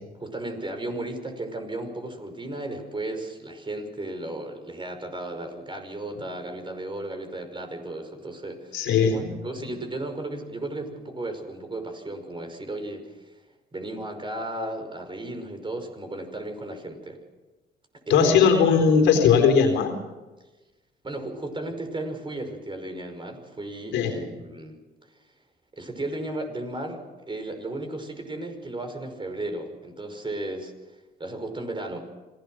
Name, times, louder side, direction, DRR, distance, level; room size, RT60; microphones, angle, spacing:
voice 1, 0.2-13.1 13.7-17.2 18.1-18.4 21.0-24.8 25.7-30.7 31.2-32.0, right 2 dB, 25° right, 6 dB, 5.4 m, -34 dB
voice 2, 8.7-9.3 18.1-19.9 23.9-24.2, left 6 dB, 80° left, 5 dB, 4.0 m, -19 dB
26.0 x 17.0 x 6.4 m, 1.2 s
supercardioid pair, 65°, 19 cm